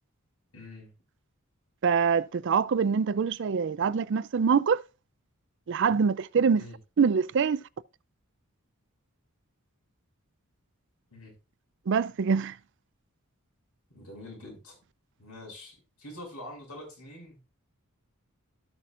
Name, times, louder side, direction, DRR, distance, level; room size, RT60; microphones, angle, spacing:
voice 1, 0.5-0.9 6.5-6.8 11.1-11.3 13.9-14.8 15.2-17.4, left 1 dB, 80° left, 5.8 m, -45 dB
voice 2, 1.8-4.8 5.7-6.6 7.0-7.6 11.9-12.5, right 6 dB, 55° right, 0.4 m, -24 dB
17.0 x 5.9 x 2.5 m
head